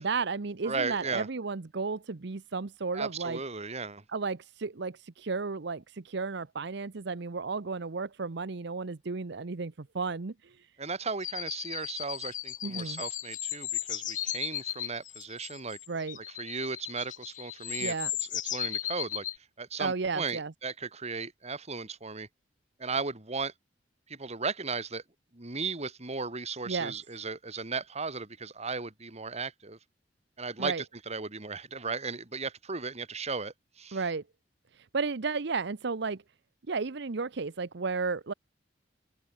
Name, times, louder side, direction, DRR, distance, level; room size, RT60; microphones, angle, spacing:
voice 1, 0.0-3.4 4.1-10.7 12.6-13.0 15.9-16.2 17.8-18.1 19.8-20.5 26.7-26.9 30.6-30.8 33.9-34.2 34.7-36.2 36.7-38.3, right 4 dB, 65° right, 0.8 m, -33 dB
voice 2, 0.6-1.3 2.9-4.0 10.8-15.8 16.2-17.9 18.3-19.2 19.6-22.3 22.8-23.5 24.1-25.0 25.3-29.8 30.4-34.0, right 4 dB, 35° right, 2.6 m, -36 dB
sound 1, 11.2-19.4, left 12 dB, 45° left, 0.9 m, -36 dB
open air
head